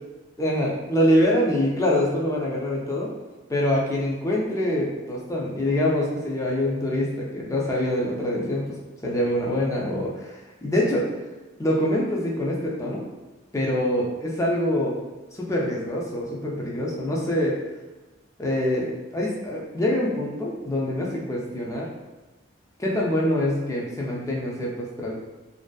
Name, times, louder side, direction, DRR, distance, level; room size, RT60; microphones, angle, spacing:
voice 1, 0.4-3.1 3.5-8.8 9.0-11.1 11.6-13.0 13.5-15.0 15.3-17.6 18.4-18.9 19.1-21.9 22.8-25.1, left 1 dB, 15° left, -3 dB, 0.3 m, -25 dB
2.5 x 2.4 x 2.2 m, 1.1 s
head